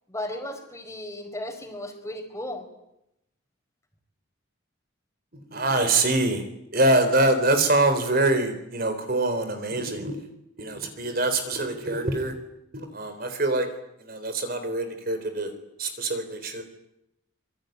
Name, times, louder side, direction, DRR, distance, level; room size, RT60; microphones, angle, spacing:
voice 1, 0.1-2.6, left 1 dB, 15° left, 5 dB, 4.8 m, -35 dB
voice 2, 5.3-6.4 6.7-10.2 10.6-12.3 12.7-13.7 14.0-15.5 15.8-16.6, right 2 dB, 45° right, 8 dB, 3.8 m, -24 dB
26.0 x 23.0 x 9.3 m, 0.84 s
head